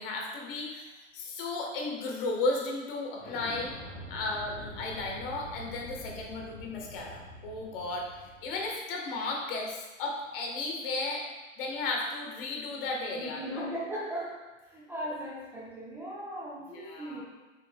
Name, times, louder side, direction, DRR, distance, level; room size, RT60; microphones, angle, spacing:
voice 1, 0.0-3.8 4.1-8.1 8.4-11.2 11.6-13.7 16.7-17.2, left 2 dB, 45° left, 0 dB, 1.8 m, -34 dB
Explosion, 3.2-8.7, left 1 dB, 20° left, 1.8 m, -45 dB
voice 2, 13.1-17.2, equal, 5° right, -6 dB, 0.7 m, -38 dB
8.9 x 6.1 x 2.4 m, 1.2 s
hypercardioid pair, 125°, 39 cm